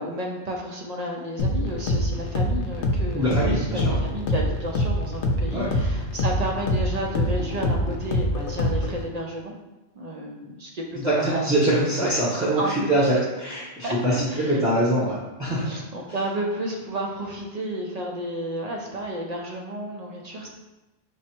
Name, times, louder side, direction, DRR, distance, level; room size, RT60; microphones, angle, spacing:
voice 1, 0.0-9.6 9.9-11.4 12.0-12.1 12.6-12.9 13.6-14.6 15.6-20.5, right 1 dB, 50° right, 0 dB, 0.4 m, -32 dB
sound 1, 1.4-9.1, left 1 dB, 75° left, 0.8 m, -25 dB
voice 2, 3.1-4.0 5.5-5.7 11.0-15.7, right 1 dB, 5° right, -8 dB, 0.6 m, -23 dB
4.7 x 2.1 x 4.3 m, 1.0 s
omnidirectional pair, 1.2 m